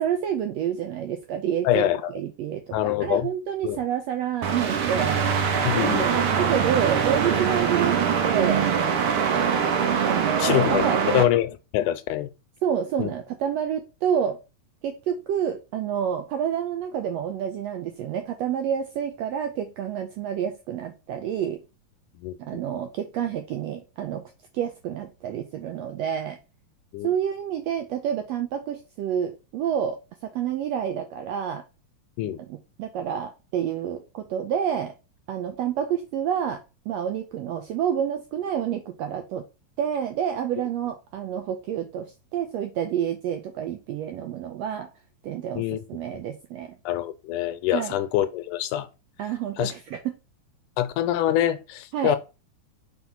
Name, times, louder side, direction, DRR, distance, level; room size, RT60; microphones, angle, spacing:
voice 1, 0.0-5.2 5.7-8.0 8.2-8.7 9.0-9.5 10.0-11.3 12.6-14.4 14.8-21.6 22.4-24.2 24.5-26.4 27.0-31.6 32.4-34.9 35.3-36.6 36.9-39.4 39.8-44.9 45.2-46.7 47.7-48.0 49.2-50.2 51.9-52.2, right 9 dB, 85° right, 1.5 m, -28 dB
voice 2, 1.6-2.0 2.7-3.3 3.6-3.8 5.7-6.2 10.4-12.3 13.0-13.1 22.2-22.6 26.9-27.1 32.2-32.4 45.6-45.8 46.9-48.9 49.6-49.7 50.8-52.2, left 13 dB, 80° left, 2.0 m, -25 dB
sound 1, 4.4-11.2, right 7 dB, 65° right, 1.4 m, -23 dB
4.5 x 4.3 x 5.6 m
omnidirectional pair, 3.6 m